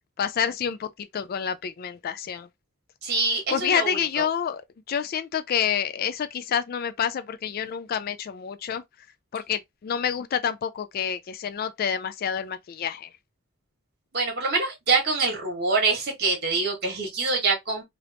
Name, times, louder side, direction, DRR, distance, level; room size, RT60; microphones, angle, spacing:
voice 1, 0.2-2.5 3.5-4.6 4.9-8.8 9.3-13.1, left 8 dB, 45° left, 0.3 m, -28 dB
voice 2, 3.0-4.0 14.1-17.8, right 3 dB, 50° right, 1.4 m, -25 dB
3.4 x 2.5 x 2.8 m
head